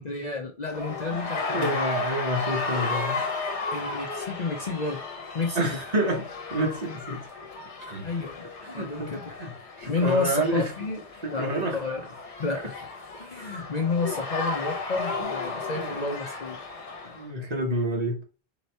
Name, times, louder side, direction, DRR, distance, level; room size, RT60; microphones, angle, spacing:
voice 1, 0.0-1.8 3.7-5.0 5.3-5.7 8.0-8.4 8.7-9.3 9.9-11.0 11.3-12.0 12.4-12.7 13.2-16.6 17.0-17.1, left 3 dB, 45° left, 0.7 m, -30 dB
sound 1, 0.7-17.2, left 3 dB, 80° left, 1.2 m, -34 dB
voice 2, 1.5-3.2 5.6-7.2 7.8-8.1 8.6-10.7 11.2-11.8 15.2-15.3 15.7-16.2 17.1-18.2, right 1 dB, 40° right, 1.0 m, -29 dB
4.0 x 2.9 x 4.4 m
omnidirectional pair, 1.2 m